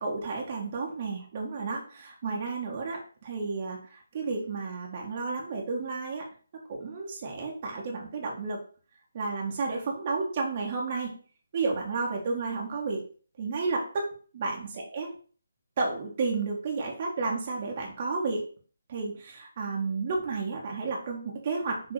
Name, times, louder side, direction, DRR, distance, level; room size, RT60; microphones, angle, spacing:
voice 1, 0.0-6.2 6.7-8.6 9.1-11.1 11.5-13.0 13.4-15.1 15.8-18.5 18.9-21.9, right 4 dB, 40° right, -1 dB, 1.7 m, -32 dB
6.7 x 3.7 x 4.9 m, 0.40 s
figure-of-eight pair, 150°, 0 cm